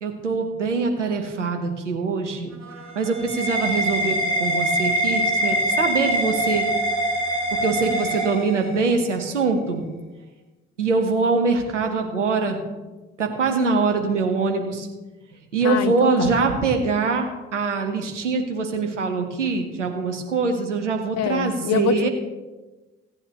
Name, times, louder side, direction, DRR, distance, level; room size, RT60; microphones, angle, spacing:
voice 1, 0.0-2.6 2.9-6.6 7.6-9.9 10.8-12.6 13.2-14.9 15.5-22.1, right 4 dB, 90° right, 4 dB, 1.0 m, -23 dB
sound 1, 2.5-9.0, equal, 50° right, 3.0 m, -24 dB
voice 2, 15.6-16.3 21.2-22.1, left 9 dB, 50° left, 14 dB, 0.7 m, -25 dB
16.0 x 9.0 x 2.9 m, 1.2 s
figure-of-eight pair, 45°, 35 cm